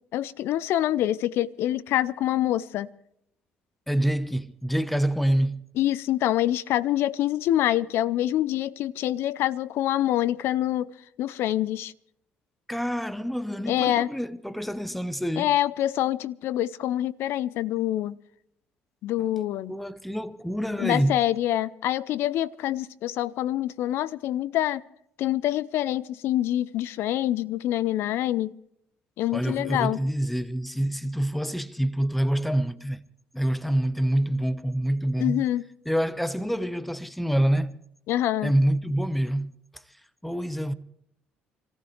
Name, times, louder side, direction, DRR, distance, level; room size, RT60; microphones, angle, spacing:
voice 1, 0.1-2.9 5.8-10.9 11.2-11.9 13.7-14.1 15.4-18.2 19.0-19.7 20.8-24.8 25.2-28.6 29.2-30.0 35.2-35.7 38.1-38.5, left 13 dB, 70° left, 0.6 m, -26 dB
voice 2, 3.9-5.6 12.7-15.5 19.7-21.2 29.3-33.0 33.3-35.4 35.9-37.8 38.4-39.8 40.2-40.7, right 1 dB, ahead, 0.9 m, -26 dB
27.0 x 14.5 x 3.2 m
supercardioid pair, 65°, 4 cm